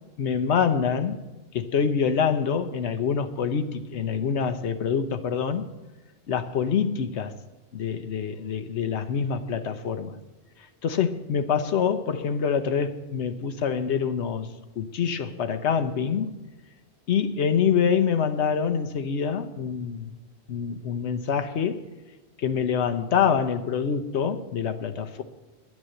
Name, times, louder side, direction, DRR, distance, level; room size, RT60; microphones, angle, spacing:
voice 1, 0.2-1.2 1.5-5.7 6.3-7.3 7.7-10.2 10.8-14.5 14.8-16.3 17.1-20.1 20.5-21.8 22.4-25.2, left 7 dB, 85° left, 1.1 m, -25 dB
10.0 x 9.4 x 7.7 m
omnidirectional pair, 1.1 m